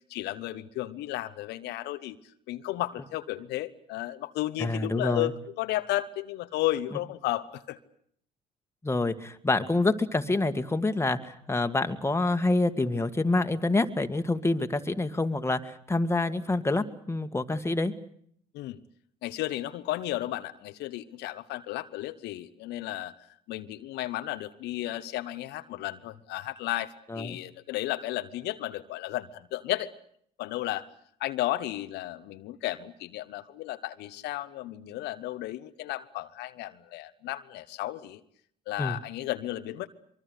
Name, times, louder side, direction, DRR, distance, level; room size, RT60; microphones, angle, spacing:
voice 1, 0.1-2.2 2.5-7.8 18.5-18.8 19.2-23.1 23.5-29.9 30.4-30.9 31.2-38.2 38.7-39.9, left 15 dB, 80° left, 10 dB, 1.2 m, -33 dB
voice 2, 4.6-5.3 8.8-17.9 27.1-27.4 38.8-39.0, left 2 dB, 15° left, 8 dB, 2.0 m, -27 dB
24.0 x 23.5 x 8.2 m, 0.66 s
supercardioid pair, 75°, 17 cm